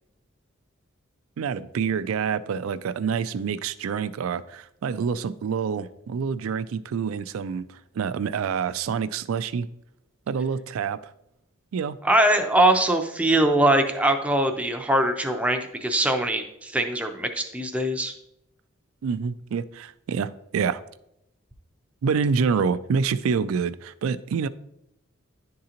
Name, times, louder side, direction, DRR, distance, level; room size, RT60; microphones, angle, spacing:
voice 1, 1.4-9.7 10.3-11.0 11.7-12.0 19.0-20.8 22.0-24.5, right 6 dB, 75° right, 0.3 m, -27 dB
voice 2, 12.0-18.1, right 1 dB, 5° right, 0.5 m, -22 dB
10.5 x 3.8 x 2.8 m
head